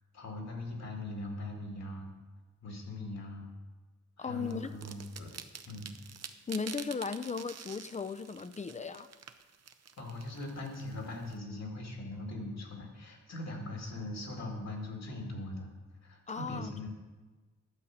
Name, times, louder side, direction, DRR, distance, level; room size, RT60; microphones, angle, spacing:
voice 1, 0.1-2.1 2.6-3.5 4.2-5.3 5.7-5.9 10.0-15.7 16.0-16.9, left 2 dB, 65° left, 2.0 m, -40 dB
voice 2, 4.2-4.7 6.5-9.1 16.3-16.9, left 5 dB, 25° left, 0.4 m, -37 dB
sound 1, 4.5-11.3, right 7 dB, 60° right, 0.6 m, -48 dB
11.5 x 5.4 x 7.2 m
wide cardioid pair, 155°, 29 cm